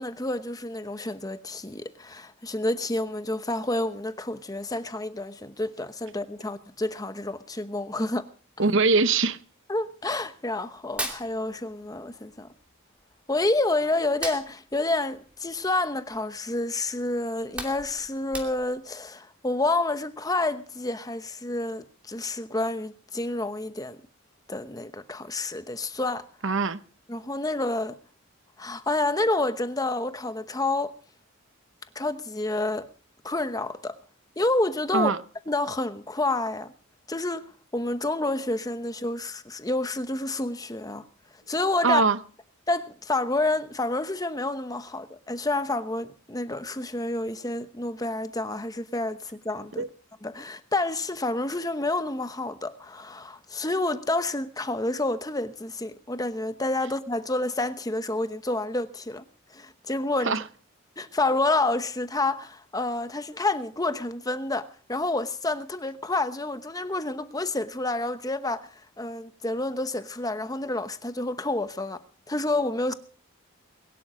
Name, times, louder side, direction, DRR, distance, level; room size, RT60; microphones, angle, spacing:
voice 1, 0.0-8.3 9.7-12.5 13.3-24.0 24.5-26.3 27.1-28.0 28.6-31.0 31.9-32.9 33.2-34.0 34.4-35.1 35.5-36.7 37.1-37.5 37.7-41.0 41.5-42.0 42.7-49.8 50.2-59.2 59.5-60.4 61.0-72.9, left 2 dB, 15° left, 0.9 m, -29 dB
voice 2, 8.6-9.4 26.4-26.8 34.9-35.2 41.8-42.2 49.8-49.9 60.2-60.4, right 4 dB, 60° right, 0.9 m, -22 dB
Hands, 10.8-12.1 12.3-13.6 14.0-16.4 16.8-16.9 17.3-18.9, right 1 dB, 5° right, 2.7 m, -37 dB
21.5 x 11.5 x 5.1 m
head